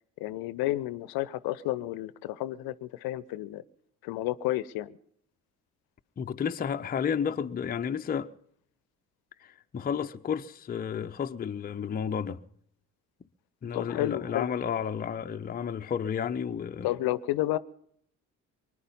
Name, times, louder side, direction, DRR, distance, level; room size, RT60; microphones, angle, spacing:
voice 1, 0.2-3.6 4.0-5.0 13.7-14.5 16.8-17.6, left 15 dB, 55° left, 0.7 m, -31 dB
voice 2, 6.2-8.3 9.4-12.4 13.6-16.9, left 7 dB, 20° left, 0.6 m, -32 dB
24.0 x 10.0 x 5.5 m
figure-of-eight pair, 45°, 45 cm